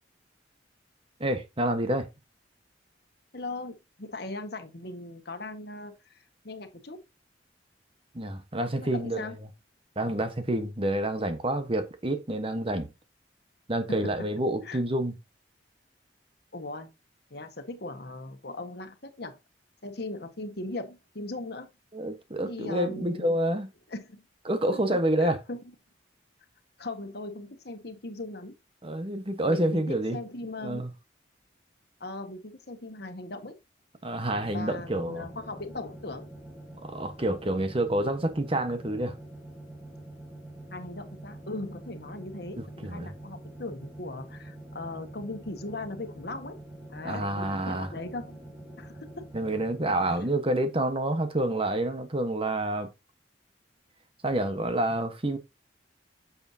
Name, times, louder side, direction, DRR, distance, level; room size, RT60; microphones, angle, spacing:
voice 1, 1.2-2.1 8.1-9.3 10.0-12.9 13.7-15.1 21.9-23.7 24.5-25.4 28.8-30.2 30.6-30.9 34.0-35.3 36.8-39.2 42.8-43.1 47.0-47.9 49.3-52.9 54.2-55.4, right 1 dB, 30° right, 1.2 m, -28 dB
voice 2, 3.3-7.0 8.7-9.4 13.9-14.3 14.6-14.8 16.5-16.9 17.3-19.4 19.8-21.7 22.4-23.4 23.9-24.2 24.7-25.7 26.8-28.5 29.4-30.8 32.0-33.5 34.5-36.3 40.7-46.6 46.9-48.4 48.8-49.2, left 2 dB, 60° left, 1.6 m, -39 dB
sound 1, 34.3-50.3, right 1 dB, 10° right, 2.0 m, -45 dB
8.8 x 7.3 x 2.8 m
head